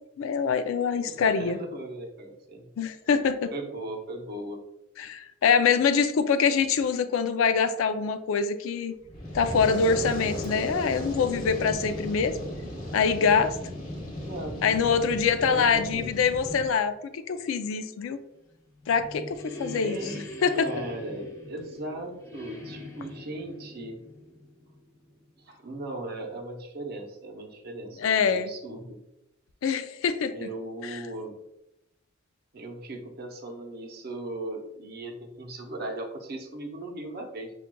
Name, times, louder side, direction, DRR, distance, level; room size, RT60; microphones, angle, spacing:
voice 1, 0.2-1.6 2.8-3.5 5.0-8.9 9.3-12.3 12.9-13.6 14.6-18.2 18.9-20.0 20.4-20.7 28.0-28.5 29.6-30.5 30.8-31.0, left 6 dB, 85° left, 10 dB, 0.3 m, -24 dB
voice 2, 1.1-2.7 3.5-4.6 14.2-14.7 15.4-16.1 19.8-20.2 20.5-24.0 25.4-29.0 30.3-31.4 32.5-37.5, right 2 dB, 50° right, 3 dB, 0.6 m, -38 dB
Fire, 9.0-16.7, equal, 35° left, 1.1 m, -36 dB
sound 1, 18.5-25.2, left 2 dB, 15° left, 0.8 m, -42 dB
5.8 x 2.3 x 2.2 m, 0.87 s
head